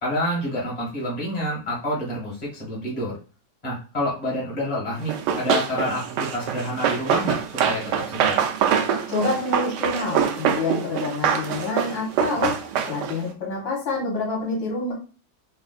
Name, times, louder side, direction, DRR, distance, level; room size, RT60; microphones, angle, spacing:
voice 1, 0.0-3.1 3.6-7.4 7.7-8.4, left 1 dB, 20° left, -5 dB, 1.7 m, -28 dB
Run, 5.1-13.3, right 8 dB, 75° right, 1.1 m, -24 dB
voice 2, 9.1-14.9, left 3 dB, 80° left, -3 dB, 1.9 m, -27 dB
4.3 x 2.5 x 2.4 m, 0.36 s
omnidirectional pair, 2.1 m